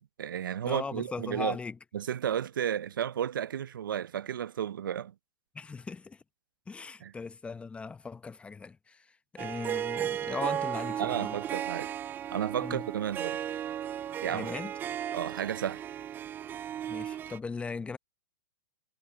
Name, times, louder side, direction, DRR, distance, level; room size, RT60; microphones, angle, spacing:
voice 1, 0.0-1.6 1.9-5.1 7.0-7.1 11.0-11.9 12.3-13.4 14.2-14.5 15.1-15.8, right 9 dB, 75° right, 0.8 m, -33 dB
voice 2, 0.6-1.7 5.5-6.2 6.7-11.4 12.6-12.8 14.3-14.7 16.9-18.0, left 4 dB, 10° left, 0.8 m, -39 dB
Harp, 9.4-17.4, right 10 dB, 15° right, 0.3 m, -35 dB
hypercardioid pair, 120°, 11 cm